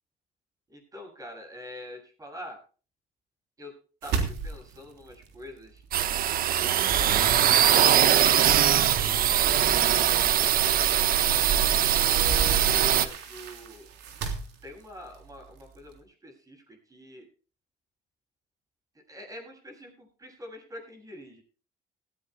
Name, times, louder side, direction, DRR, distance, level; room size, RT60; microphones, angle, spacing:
voice 1, 0.7-2.6 3.6-3.8 4.0-6.8 7.2-7.7 8.4-10.2 12.1-13.9 14.6-17.3 19.1-21.4, equal, 20° right, 3 dB, 7.4 m, -45 dB
sound 1, 4.0-6.2 6.5-8.9 9.6-9.7 10.1-10.2 11.6-15.9, right 5 dB, 85° right, 3.4 m, -35 dB
sound 2, 5.9-13.1, right 10 dB, 60° right, 1.1 m, -22 dB
18.0 x 16.0 x 2.2 m, 0.37 s
cardioid pair, 110°, 17 cm